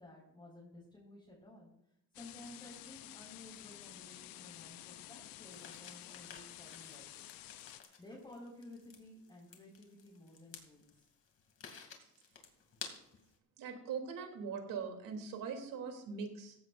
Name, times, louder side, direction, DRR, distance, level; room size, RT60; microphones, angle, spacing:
voice 1, 0.0-1.7 2.2-7.2 7.7-11.1, left 1 dB, 15° left, -4 dB, 5.5 m, -55 dB
sound 1, 2.1-7.8, left 14 dB, 80° left, 0.8 m, -51 dB
sound 2, 5.5-13.3, left 5 dB, 40° left, 2.9 m, -53 dB
voice 2, 13.6-16.6, right 6 dB, 70° right, 3 dB, 3.3 m, -41 dB
17.5 x 16.0 x 2.7 m, 0.80 s
cardioid pair, 130°, 34 cm